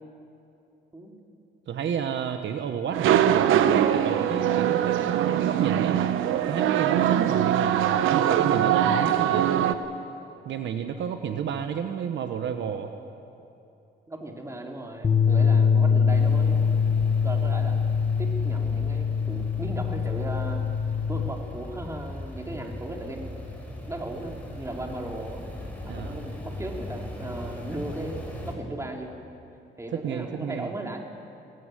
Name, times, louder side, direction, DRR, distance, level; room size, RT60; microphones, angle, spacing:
voice 1, 1.7-6.0 6.5-9.5 10.4-12.9 15.3-15.6 25.9-26.2 29.9-30.7, right 8 dB, 70° right, 7 dB, 1.2 m, -31 dB
sound 1, 2.9-9.7, right 10 dB, 85° right, 1.0 m, -22 dB
voice 2, 14.1-16.7 17.2-17.8 18.2-20.7 21.1-23.4 23.9-25.4 25.8-28.2 28.4-29.2 29.8-31.0, right 1 dB, 15° right, 2 dB, 3.2 m, -36 dB
sound 2, 15.0-21.3, left 6 dB, 30° left, 1.8 m, -23 dB
sound 3, 16.1-28.5, left 1 dB, 10° left, 5.1 m, -39 dB
19.0 x 17.5 x 9.2 m, 2.8 s
cardioid pair, 90°, 20 cm